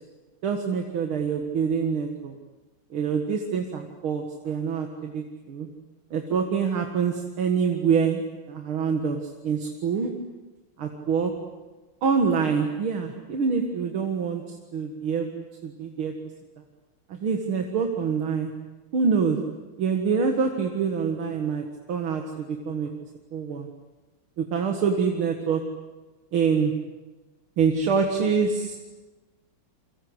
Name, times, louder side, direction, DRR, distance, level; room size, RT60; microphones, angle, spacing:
voice 1, 0.4-2.4 2.9-5.7 6.1-8.2 8.5-10.1 10.8-11.3 12.0-16.1 17.1-18.5 18.9-19.4 19.8-22.9 23.3-23.7 24.4-25.6 26.3-26.7 27.6-28.8, right 6 dB, 80° right, 3 dB, 2.6 m, -26 dB
29.0 x 24.0 x 8.1 m, 1.2 s
omnidirectional pair, 2.3 m